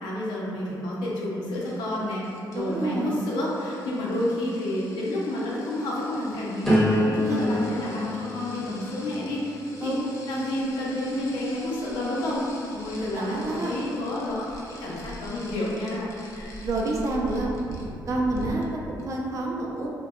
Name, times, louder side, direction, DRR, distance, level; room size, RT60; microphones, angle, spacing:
voice 1, 0.0-2.3 2.5-10.0 10.3-12.4 12.7-16.5, left 1 dB, 85° left, -5 dB, 0.6 m, -30 dB
sound 1, 1.6-18.1 18.4-18.7 19.0-19.1, left 2 dB, 45° left, 0.4 m, -48 dB
voice 2, 2.5-3.2 7.2-7.6 9.8-10.1 13.1-13.7 16.6-17.6 18.1-19.9, right 2 dB, 45° right, -2 dB, 0.4 m, -28 dB
sound 2, 6.6-12.5 13.0-13.5, equal, 5° left, 0.6 m, -29 dB
Thunder, 10.7-18.5, equal, 65° right, 0.8 m, -41 dB
2.7 x 2.2 x 2.3 m, 2.4 s
cardioid pair, 100°, 8 cm